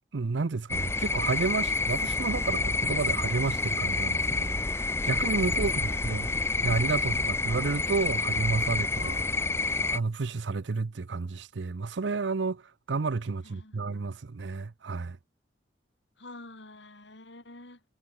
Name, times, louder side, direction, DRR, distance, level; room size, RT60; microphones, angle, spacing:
voice 1, 0.1-6.3 6.6-9.1 9.9-12.6 12.9-15.2, right 4 dB, 80° right, 0.6 m, -31 dB
sound 1, 0.7-10.0, left 3 dB, 15° left, 0.5 m, -28 dB
voice 2, 5.6-6.5 9.0-9.4 13.4-14.0 16.2-17.8, left 2 dB, 80° left, 5.2 m, -47 dB
head